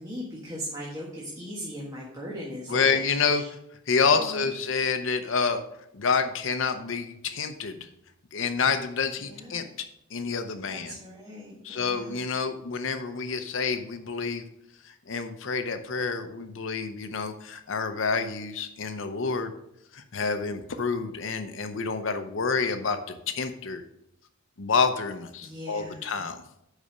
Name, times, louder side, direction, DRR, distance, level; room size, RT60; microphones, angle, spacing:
voice 1, 0.0-3.5 4.3-4.5 9.2-9.6 10.7-12.2 25.4-26.0, equal, 20° right, -4 dB, 1.5 m, -39 dB
voice 2, 2.7-3.6 3.9-5.6 5.9-7.9 8.3-9.9 10.1-11.0 11.6-14.4 14.8-19.5 19.9-23.8 24.6-26.4, left 5 dB, 65° left, 8 dB, 0.7 m, -28 dB
8.2 x 5.5 x 5.0 m, 0.79 s
head